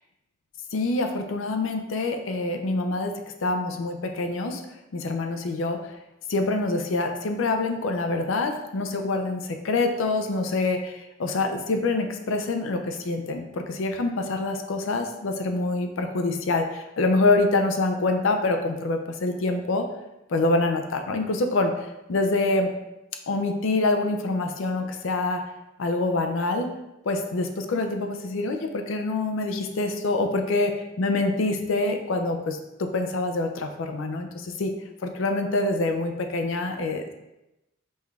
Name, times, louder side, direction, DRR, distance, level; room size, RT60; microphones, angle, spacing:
voice 1, 0.7-3.1 3.4-4.6 4.9-5.9 6.3-19.8 20.3-21.7 22.1-22.7 23.3-25.4 25.8-26.7 27.0-30.7 31.0-34.7 35.0-37.1, left 2 dB, 70° left, 5 dB, 0.5 m, -26 dB
5.4 x 3.2 x 2.4 m, 0.94 s
head